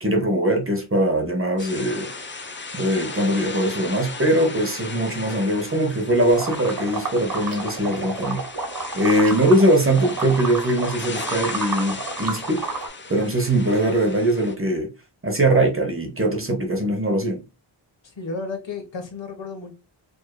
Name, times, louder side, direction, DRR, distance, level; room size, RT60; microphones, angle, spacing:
voice 1, 0.0-2.1 2.7-8.4 8.9-12.6 13.1-14.9 15.2-17.4, right 1 dB, 25° right, 1.0 m, -21 dB
sound 1, 1.6-14.5, left 3 dB, 25° left, 0.6 m, -36 dB
sound 2, 6.4-9.7 10.0-12.9, right 4 dB, 45° right, 1.5 m, -30 dB
voice 2, 18.0-19.7, left 3 dB, 65° left, 1.3 m, -33 dB
5.1 x 2.8 x 2.2 m
wide cardioid pair, 100°, 49 cm